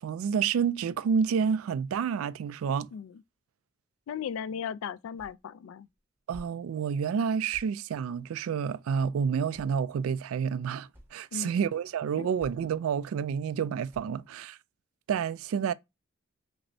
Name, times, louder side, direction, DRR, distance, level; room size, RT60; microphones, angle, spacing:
voice 1, 0.0-2.9 6.3-14.6 15.1-15.7, right 7 dB, 85° right, 0.3 m, -29 dB
voice 2, 4.1-5.9 11.3-11.6 12.2-12.3, left 7 dB, 85° left, 0.3 m, -36 dB
sound 1, 5.2-5.5 5.8-6.6 6.9-7.1 7.5-7.8 8.9-9.0 9.5-10.0 10.5-10.6 10.8-11.1 11.9-12.0 12.4-12.8 13.1-13.4 13.9-14.2, equal, 10° right, 0.8 m, -51 dB
6.0 x 2.0 x 2.6 m
head